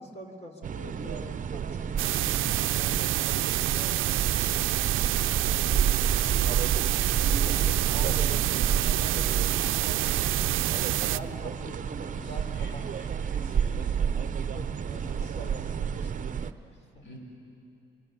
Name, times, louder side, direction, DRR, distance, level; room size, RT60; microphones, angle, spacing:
voice 1, 0.0-4.3 4.9-8.4 8.8-13.1 13.8-14.2 14.5-17.0, equal, 35° left, 4 dB, 3.9 m, -45 dB
sound 1, 0.6-16.5, right 7 dB, 40° right, 0.8 m, -30 dB
sound 2, 2.0-11.2, right 16 dB, 85° right, 0.5 m, -27 dB
voice 2, 11.0-11.5 11.7-14.2 14.9-15.4 17.0-17.2, left 1 dB, 75° left, 1 dB, 5.9 m, -51 dB
25.5 x 23.5 x 7.0 m, 2.7 s
cardioid pair, 90°, 20 cm